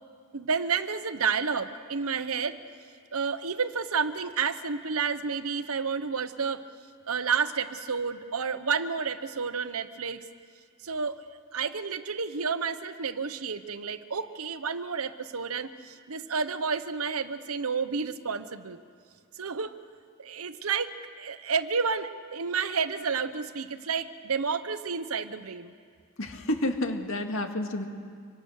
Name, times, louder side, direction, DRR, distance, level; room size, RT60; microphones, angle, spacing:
voice 1, 0.3-2.6 3.1-6.6 7.1-10.2 10.8-11.2 11.5-18.8 19.4-19.8 20.2-25.7, right 5 dB, 75° right, 12 dB, 1.0 m, -30 dB
voice 2, 26.2-27.9, left 1 dB, 60° left, 4 dB, 2.1 m, -30 dB
26.0 x 24.0 x 6.5 m, 2.1 s
head